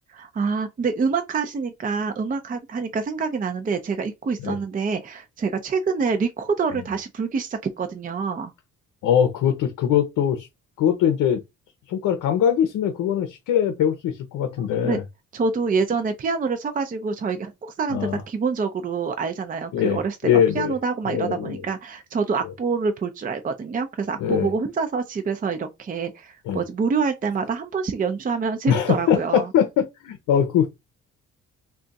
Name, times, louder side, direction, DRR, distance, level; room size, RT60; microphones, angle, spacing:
voice 1, 0.1-8.5 14.8-15.0 15.3-29.5, right 5 dB, 30° right, 0.5 m, -26 dB
voice 2, 9.0-10.5 10.8-11.4 11.9-15.0 17.9-18.2 19.7-20.7 21.1-21.6 24.2-24.5 26.5-26.6 28.7-30.7, left 9 dB, 85° left, 0.7 m, -22 dB
2.4 x 2.3 x 3.9 m
cardioid pair, 90°, 30 cm